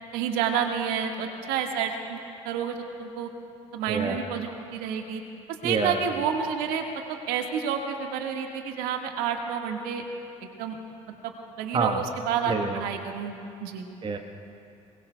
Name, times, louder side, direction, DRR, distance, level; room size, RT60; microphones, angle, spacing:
voice 1, 0.1-2.2 2.4-3.3 3.7-5.2 5.6-10.0 10.4-10.8 11.2-11.3 11.6-13.3 13.6-13.9, right 7 dB, 65° right, 3 dB, 1.7 m, -29 dB
voice 2, 3.9-4.2 5.6-6.0 11.7-12.0 12.5-12.8 14.0-14.2, right 4 dB, 30° right, 5 dB, 1.3 m, -27 dB
27.0 x 22.0 x 2.3 m, 2.6 s
hypercardioid pair, 60°, 16 cm